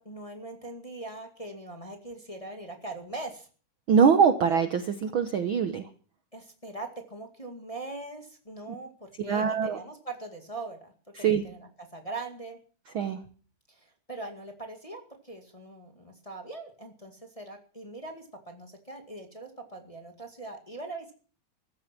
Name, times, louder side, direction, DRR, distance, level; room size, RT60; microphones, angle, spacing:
voice 1, 0.0-3.5 4.5-4.6 6.3-10.9 11.2-12.6 13.7-21.1, right 2 dB, 15° left, 3 dB, 1.7 m, -41 dB
voice 2, 3.9-5.8 9.3-9.8 11.2-11.4 12.9-13.2, right 6 dB, 60° right, 8 dB, 1.4 m, -23 dB
15.5 x 14.0 x 6.1 m, 0.42 s
omnidirectional pair, 3.4 m